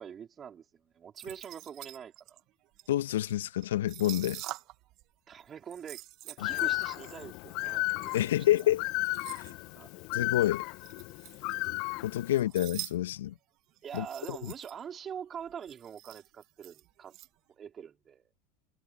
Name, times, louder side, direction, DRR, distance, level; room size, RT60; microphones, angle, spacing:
voice 1, 0.0-2.4 5.3-8.3 9.7-9.9 13.8-17.2 17.6-18.3, right 8 dB, 35° right, 4.8 m, -44 dB
sound 1, 1.2-5.0 5.3-9.5 10.3-11.8 12.1-13.0 13.2-13.3 13.8-14.8 15.2-15.3 15.4-17.3, right 18 dB, 55° right, 2.0 m, -46 dB
voice 2, 2.9-4.4 6.4-6.5 8.1-8.8 10.1-10.6 12.0-13.3 13.9-14.4, left 13 dB, 75° left, 1.9 m, -28 dB
Bird, 6.4-12.4, left 23 dB, 60° left, 1.9 m, -34 dB
hypercardioid pair, 75°, 0 cm